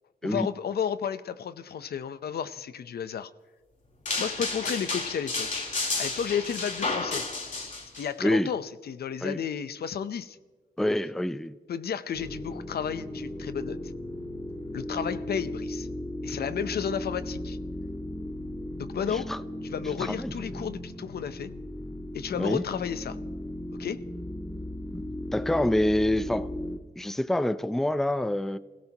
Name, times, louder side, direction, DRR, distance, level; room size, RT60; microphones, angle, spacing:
voice 1, 0.2-3.3 4.2-5.7 6.0-7.2 8.0-10.4 11.7-13.8 14.7-15.9 16.2-17.6 18.8-19.3 19.7-21.5 22.1-23.2 23.8-24.0, left 7 dB, 75° left, 0.8 m, -32 dB
sound 1, 4.1-8.0, left 3 dB, 50° left, 3.7 m, -31 dB
voice 2, 10.8-11.5 19.1-19.4 20.0-20.3 22.4-22.6 24.9-25.0 25.3-26.5 27.0-28.6, left 1 dB, ahead, 0.5 m, -26 dB
sound 2, 12.1-26.8, left 1 dB, 25° left, 2.0 m, -36 dB
29.0 x 17.0 x 3.0 m
wide cardioid pair, 125°, 17 cm